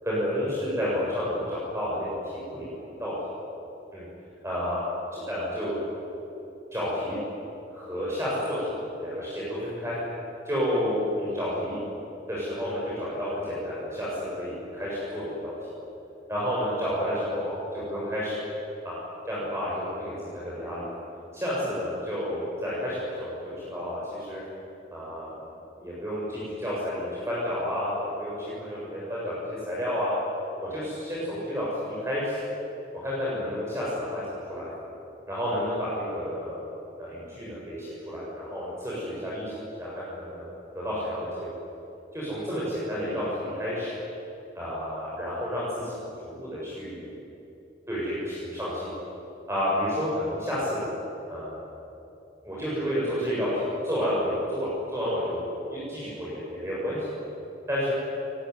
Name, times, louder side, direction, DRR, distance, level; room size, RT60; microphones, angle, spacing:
voice 1, 0.0-2.2 2.5-3.1 3.9-4.0 4.4-4.8 5.1-5.8 6.7-7.2 7.7-10.0 10.5-11.8 12.3-15.5 16.3-18.5 18.8-19.0 19.3-20.9 21.3-24.4 24.9-25.3 25.8-30.1 30.6-31.7 32.0-32.5 32.9-34.7 35.3-36.7 37.0-40.5 40.7-41.5 42.1-43.3 43.5-43.9 44.6-45.9 46.2-47.1 47.9-48.9 49.5-50.8 51.3-51.6 52.4-55.4 55.7-57.1 57.7-57.9, equal, 15° right, -7 dB, 7.2 m, -30 dB
29.0 x 21.0 x 9.7 m, 2.9 s
head